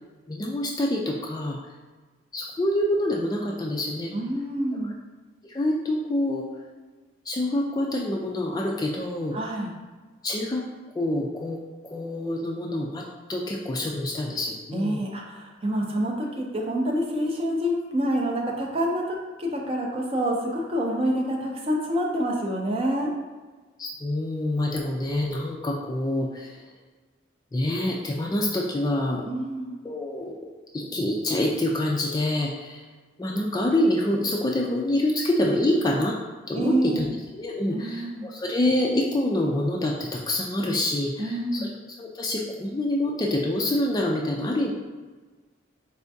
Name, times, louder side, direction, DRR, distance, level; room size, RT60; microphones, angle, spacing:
voice 1, 0.3-1.6 2.3-4.1 5.4-6.5 7.3-9.3 10.2-10.6 10.9-11.6 11.8-13.0 13.3-15.0 23.8-26.6 27.5-29.2 29.8-30.3 30.7-32.8 33.2-36.2 36.5-41.7 42.0-44.7, left 1 dB, 20° left, -1 dB, 0.3 m, -26 dB
voice 2, 4.1-4.9 9.3-9.7 14.7-23.1 29.2-29.8 36.6-37.1 37.7-38.3 41.2-41.7, equal, 30° right, 0 dB, 0.5 m, -27 dB
4.3 x 3.4 x 2.7 m, 1.3 s
head